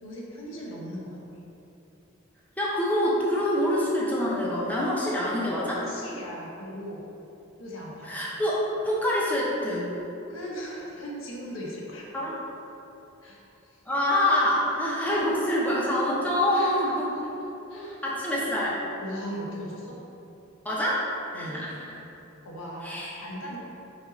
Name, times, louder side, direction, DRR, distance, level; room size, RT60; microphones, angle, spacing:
voice 1, 0.0-1.2 5.8-7.1 7.6-8.2 10.3-12.1 13.2-13.8 16.5-16.9 17.4-18.0 19.0-20.0 21.3-21.6 22.4-23.6, equal, 85° left, -4 dB, 1.2 m, -38 dB
voice 2, 2.6-5.9 8.0-9.9 12.1-12.4 13.9-17.1 18.0-18.8 20.6-21.0 21.3-21.7 22.8-23.1, left 1 dB, 10° left, -6 dB, 0.8 m, -26 dB
5.0 x 4.8 x 4.1 m, 2.9 s
head